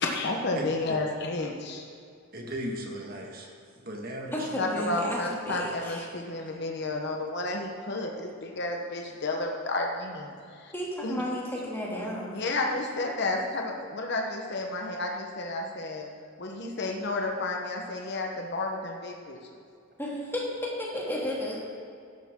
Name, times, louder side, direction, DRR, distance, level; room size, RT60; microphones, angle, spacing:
voice 1, 0.0-1.8 4.6-10.7 11.0-11.2 12.3-16.1 16.4-19.4, left 2 dB, 55° left, 1 dB, 1.0 m, -31 dB
voice 2, 2.3-4.5, right 1 dB, 45° right, 0 dB, 1.8 m, -37 dB
voice 3, 4.3-5.2 5.4-6.0 10.7-12.3 20.0-21.6, left 1 dB, 10° left, -5 dB, 2.5 m, -33 dB
15.5 x 12.0 x 3.7 m, 2.3 s
head